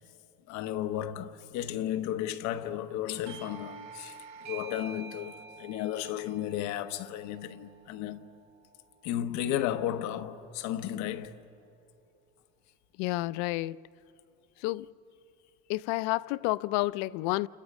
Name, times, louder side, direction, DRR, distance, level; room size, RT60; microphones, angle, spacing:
voice 1, 0.5-8.3 9.0-11.4, left 11 dB, 65° left, 1.0 m, -34 dB
Doorbell, 3.3-8.5, right 6 dB, 65° right, 2.5 m, -48 dB
voice 2, 13.0-13.8 14.6-14.9 15.7-17.5, left 20 dB, 90° left, 0.5 m, -30 dB
30.0 x 29.0 x 5.3 m
cardioid pair, 165°, 30 cm